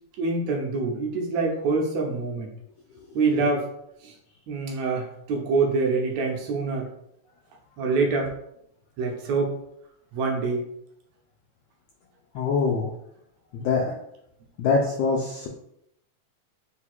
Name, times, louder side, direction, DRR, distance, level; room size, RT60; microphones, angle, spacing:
voice 1, 0.2-2.5 3.2-3.7 4.0-4.1 4.5-6.9 7.8-8.3 9.0-9.6 10.1-10.7, right 4 dB, 75° right, 1 dB, 1.8 m, -25 dB
voice 2, 12.3-12.9 13.5-13.9 14.6-15.5, left 4 dB, 80° left, 0 dB, 1.4 m, -24 dB
4.7 x 2.3 x 4.3 m, 0.76 s
omnidirectional pair, 3.4 m